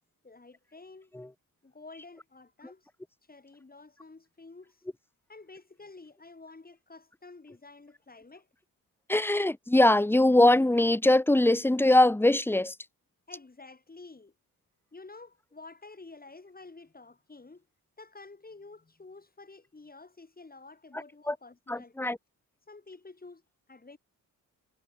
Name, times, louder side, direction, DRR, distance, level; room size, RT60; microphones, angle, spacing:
voice 1, 0.2-1.1 1.6-2.9 3.3-4.8 5.3-8.5 13.3-14.3 14.9-17.7 18.0-22.1 22.7-23.4 23.7-24.0, left 3 dB, 25° left, 5.5 m, -50 dB
voice 2, 9.1-12.7 21.3-21.4 21.7-22.2, left 1 dB, 5° left, 1.0 m, -22 dB
cardioid pair, 75°, 34 cm